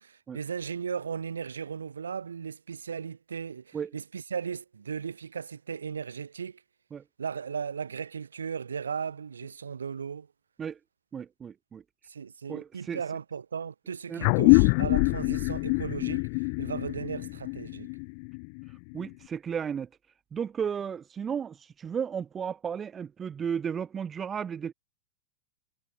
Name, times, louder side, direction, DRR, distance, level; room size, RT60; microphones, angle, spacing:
voice 1, 0.0-6.6 7.2-10.3 12.1-16.2 16.6-17.9, right 6 dB, 70° right, 2.6 m, -36 dB
voice 2, 11.1-11.8 12.5-13.0 14.1-14.2 18.7-19.9 20.3-24.7, right 7 dB, 20° right, 0.7 m, -34 dB
sound 1, 14.2-19.1, left 38 dB, 45° left, 0.7 m, -25 dB
figure-of-eight pair, 90°, 0 cm